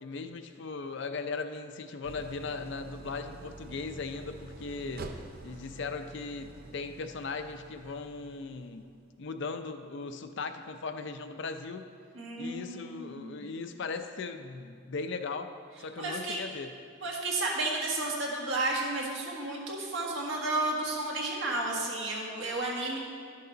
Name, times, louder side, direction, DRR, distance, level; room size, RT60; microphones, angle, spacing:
voice 1, 0.0-5.1 5.4-8.9 9.2-11.9 12.4-15.5 15.8-16.7, left 4 dB, 60° left, 8 dB, 0.5 m, -38 dB
Idling, 2.0-9.1, right 3 dB, 45° right, 0.5 m, -47 dB
voice 2, 12.1-13.5 16.0-16.4 17.0-23.0, right 2 dB, 70° right, -2 dB, 1.5 m, -32 dB
10.5 x 6.7 x 3.9 m, 2.3 s
head